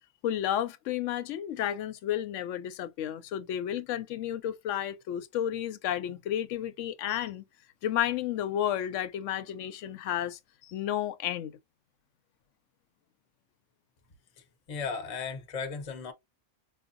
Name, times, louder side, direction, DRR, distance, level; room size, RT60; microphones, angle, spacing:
voice 1, 0.2-7.4 7.8-11.5, left 11 dB, 85° left, 0.9 m, -32 dB
voice 2, 14.7-16.1, left 5 dB, 35° left, 0.7 m, -35 dB
4.7 x 2.2 x 2.5 m
omnidirectional pair, 1.2 m